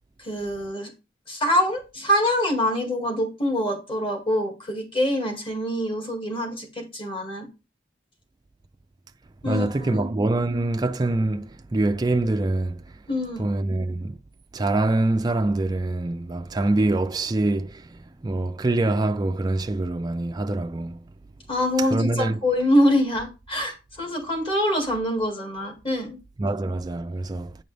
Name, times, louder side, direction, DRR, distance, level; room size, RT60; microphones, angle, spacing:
voice 1, 0.2-0.9 1.3-7.5 9.4-10.0 13.1-13.4 21.5-26.2, equal, 30° left, 2.1 m, -25 dB
voice 2, 9.4-12.8 13.4-14.2 14.5-21.0 21.8-22.4 26.4-27.6, right 2 dB, 20° right, 0.4 m, -25 dB
9.3 x 5.2 x 3.3 m
head